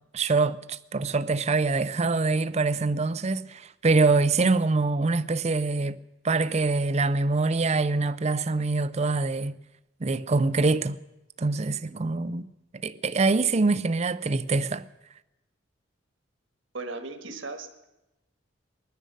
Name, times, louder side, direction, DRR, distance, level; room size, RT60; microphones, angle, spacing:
voice 1, 0.1-6.0 6.2-9.6 10.0-11.0 11.4-12.5 12.8-14.8, right 3 dB, 35° right, 0.5 m, -24 dB
voice 2, 16.7-17.8, right 3 dB, 70° right, 1.5 m, -37 dB
20.5 x 10.0 x 6.6 m
head